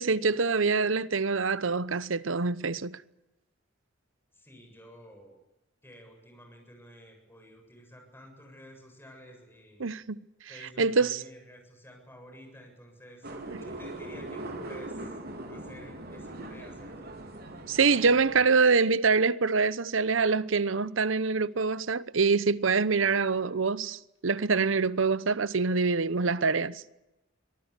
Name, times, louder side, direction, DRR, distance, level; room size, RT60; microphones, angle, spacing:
voice 1, 0.0-3.0 9.8-10.2 10.8-11.2 17.7-26.9, right 4 dB, 80° right, 0.9 m, -25 dB
voice 2, 4.3-5.4 5.8-9.9 10.5-13.3 13.6-15.1 15.5-17.2, equal, 10° left, 7.6 m, -51 dB
sound 1, 13.2-18.4, right 1 dB, 55° right, 4.0 m, -41 dB
25.0 x 19.0 x 8.2 m
head